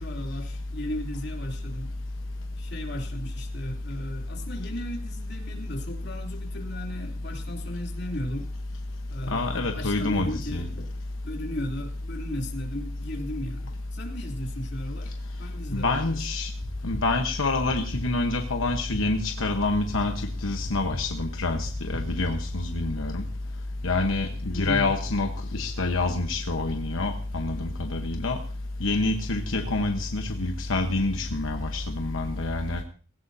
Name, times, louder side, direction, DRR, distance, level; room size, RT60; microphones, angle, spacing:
voice 1, 0.0-1.9 2.6-8.5 9.1-10.9 11.2-15.1 15.4-16.2 24.4-24.9, left 1 dB, 55° left, 1 dB, 2.8 m, -35 dB
voice 2, 9.3-10.7 15.7-16.5 16.8-23.2 23.8-28.4 28.8-32.8, left 2 dB, 90° left, 4 dB, 1.1 m, -27 dB
sound 1, 16.6-17.0 17.6-18.0 18.6-19.0 19.6-20.0 20.6-21.0 21.6-22.0, equal, 15° right, 3.0 m, -37 dB
18.0 x 16.5 x 2.7 m, 0.38 s
head